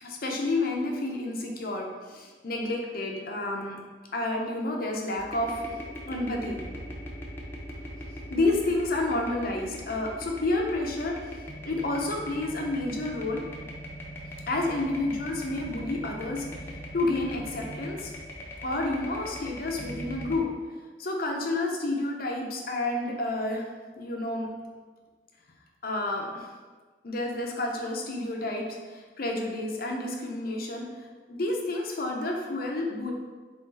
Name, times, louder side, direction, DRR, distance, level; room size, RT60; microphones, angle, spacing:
voice 1, 0.0-3.8 4.1-5.7 6.1-6.6 8.3-11.2 11.6-13.5 14.5-16.5 16.9-18.1 18.6-20.5 21.0-23.6 24.0-24.5 25.8-26.5 27.0-33.1, left 2 dB, 55° left, 1 dB, 0.7 m, -30 dB
sound 1, 5.2-20.4, equal, 15° left, 0.8 m, -40 dB
3.8 x 3.4 x 4.1 m, 1.4 s
head